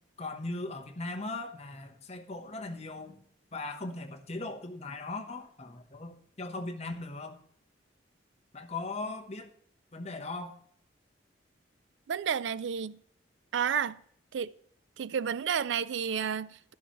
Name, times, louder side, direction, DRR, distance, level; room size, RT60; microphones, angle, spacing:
voice 1, 0.2-3.2 3.5-7.4 8.5-9.5 9.9-10.6, left 2 dB, 35° left, 1.0 m, -39 dB
voice 2, 12.1-13.0 13.5-14.0 14.3-14.5 15.0-16.7, right 7 dB, 75° right, 0.4 m, -31 dB
11.5 x 11.0 x 3.0 m
head